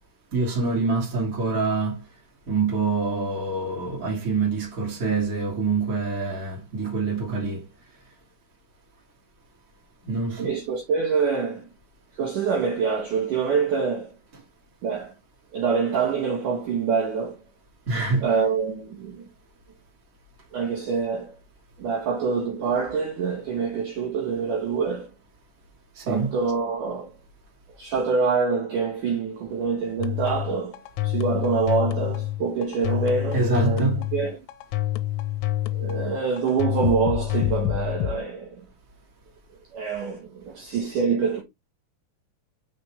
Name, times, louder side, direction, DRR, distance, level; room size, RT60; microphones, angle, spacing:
voice 1, 0.3-2.1 2.5-7.7 10.0-10.5 17.9-18.3 25.9-26.3 33.3-34.0, right 4 dB, 25° right, 2.4 m, -25 dB
voice 2, 10.4-11.7 12.2-14.1 14.8-15.1 15.5-17.4 18.2-19.2 20.5-21.4 21.8-25.1 26.1-27.1 27.8-34.4 35.7-38.7 39.7-41.4, right 5 dB, 65° right, 2.1 m, -26 dB
sound 1, 30.0-38.2, left 15 dB, 90° left, 3.5 m, -27 dB
7.0 x 6.5 x 3.5 m
omnidirectional pair, 5.8 m